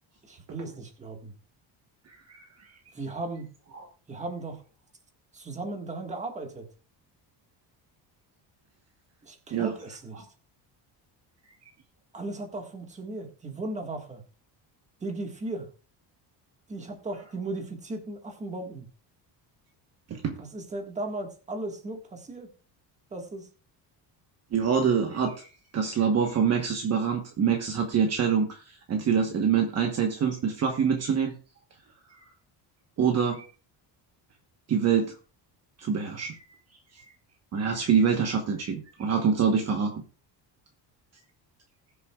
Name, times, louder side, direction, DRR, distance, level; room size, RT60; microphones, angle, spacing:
voice 1, 0.2-1.3 2.9-3.5 4.1-4.6 5.3-6.7 9.2-10.3 12.1-14.2 15.0-15.7 16.7-18.9 20.5-22.5 23.1-23.5, right 2 dB, 15° right, 4 dB, 1.6 m, -36 dB
voice 2, 24.5-25.5 25.7-31.3 33.0-33.5 34.7-35.1 35.8-36.4 37.5-40.0, right 6 dB, 35° right, 3 dB, 1.2 m, -25 dB
20.5 x 6.9 x 2.3 m, 0.36 s
cardioid pair, 180°, 43 cm